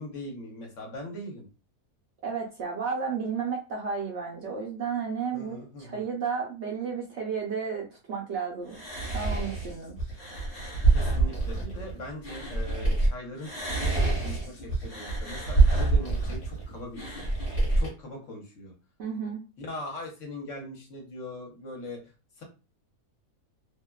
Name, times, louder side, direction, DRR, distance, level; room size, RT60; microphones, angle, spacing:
voice 1, 0.0-1.5 5.3-6.0 10.9-17.3 17.8-18.7 19.6-22.0 22.4-22.5, left 1 dB, 60° left, 1 dB, 1.1 m, -40 dB
voice 2, 2.2-8.8 9.0-10.0 19.0-19.4, right 6 dB, 65° right, 0 dB, 0.7 m, -32 dB
sound 1, 8.7-13.1 13.4-17.9, right 3 dB, 40° left, 1.1 m, -26 dB
2.7 x 2.2 x 2.2 m, 0.33 s
omnidirectional pair, 1.6 m